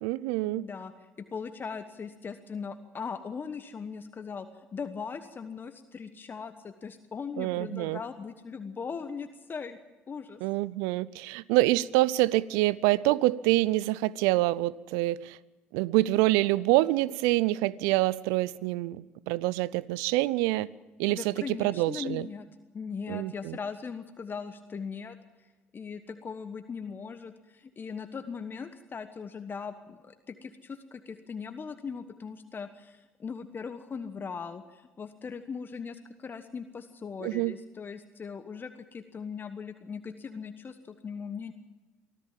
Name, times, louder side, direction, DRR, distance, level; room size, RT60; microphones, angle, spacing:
voice 1, 0.0-0.6 7.4-8.0 10.4-15.4 15.7-20.7 21.0-22.3 23.1-23.6 37.2-37.5, right 18 dB, 75° right, 0.5 m, -26 dB
voice 2, 0.5-0.9 1.2-4.5 4.7-9.8 10.1-10.4 21.1-22.5 22.7-41.5, left 5 dB, 35° left, 1.2 m, -39 dB
24.5 x 14.5 x 7.4 m
hypercardioid pair, 55°, 6 cm